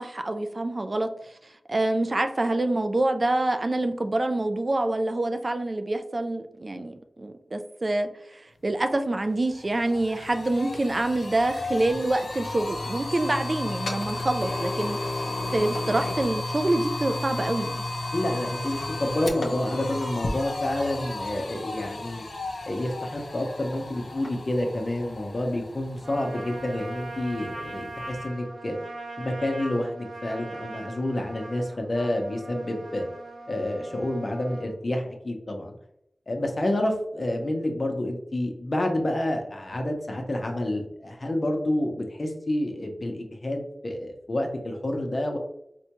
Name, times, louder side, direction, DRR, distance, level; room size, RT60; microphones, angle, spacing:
voice 1, 0.0-17.7, right 2 dB, 45° right, 7 dB, 0.3 m, -26 dB
sound 1, 8.8-8.9 9.2-28.3, left 2 dB, 90° left, 0.5 m, -34 dB
voice 2, 18.1-22.3 22.6-28.7 29.2-33.0 33.5-35.8 36.3-45.4, left 1 dB, 50° left, 3 dB, 0.7 m, -29 dB
Trumpet, 26.0-34.7, right 2 dB, 85° right, 1.0 m, -40 dB
4.1 x 2.2 x 2.9 m, 0.77 s
wide cardioid pair, 50°, 0 cm